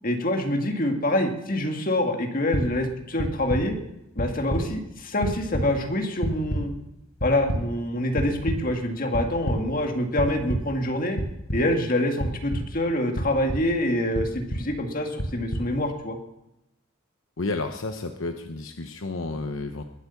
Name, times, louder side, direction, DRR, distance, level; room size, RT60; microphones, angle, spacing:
voice 1, 0.0-3.8 4.2-6.7 7.2-11.2 11.5-16.2, left 1 dB, 40° left, 3 dB, 2.1 m, -26 dB
sound 1, 2.5-2.6 3.2-3.6 4.2-4.6 5.0-5.6 6.2-6.6 7.2-7.6 8.2-8.6 9.1-9.6 10.2-10.6 11.2-11.6 12.2-12.6 13.1-13.6 14.1-14.6 15.2-15.6, equal, 85° left, 7.1 m, -27 dB
voice 2, 17.4-19.8, left 3 dB, 65° left, 6 dB, 0.9 m, -31 dB
21.5 x 8.3 x 7.1 m, 0.89 s
head